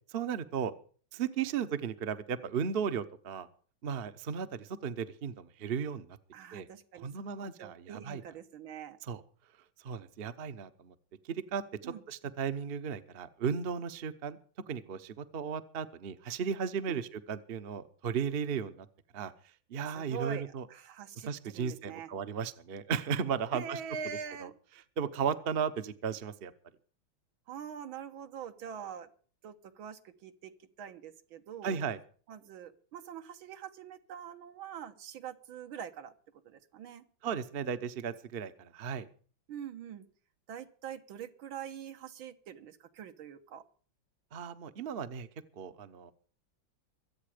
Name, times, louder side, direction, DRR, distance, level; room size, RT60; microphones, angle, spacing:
voice 1, 0.1-0.7 1.1-3.5 3.8-6.2 6.5-6.7 7.0-8.2 9.1-9.2 9.8-10.9 11.3-14.4 14.7-18.9 19.1-19.3 19.7-20.7 21.2-23.8 24.4-24.5 25.0-26.5 31.6-32.0 37.2-39.1 44.3-45.3 45.6-46.1, right 7 dB, 45° right, 11 dB, 0.8 m, -35 dB
voice 2, 6.3-9.0 11.8-12.0 16.9-17.0 19.9-22.1 23.5-24.5 27.5-29.1 29.4-30.5 30.8-31.8 32.3-36.1 36.5-37.0 39.5-40.1 40.5-43.6, right 8 dB, 80° right, 8 dB, 2.0 m, -44 dB
23.5 x 8.7 x 5.0 m, 0.42 s
omnidirectional pair, 2.2 m